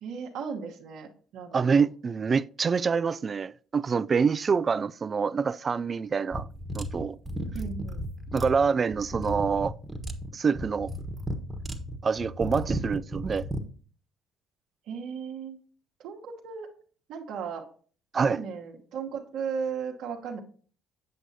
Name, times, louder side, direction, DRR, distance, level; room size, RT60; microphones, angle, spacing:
voice 1, 0.0-1.1 1.3-1.8 7.5-8.1 14.9-15.6 16.0-16.7 17.1-17.7 18.2-20.4, right 6 dB, 70° right, 1.1 m, -36 dB
voice 2, 1.5-6.5 6.7-7.2 8.3-9.7 10.3-10.9 12.0-13.5 18.1-18.4, right 5 dB, 40° right, 0.3 m, -26 dB
sound 1, 6.3-13.7, equal, 15° right, 1.3 m, -34 dB
7.9 x 7.5 x 2.7 m
supercardioid pair, 70°, 0 cm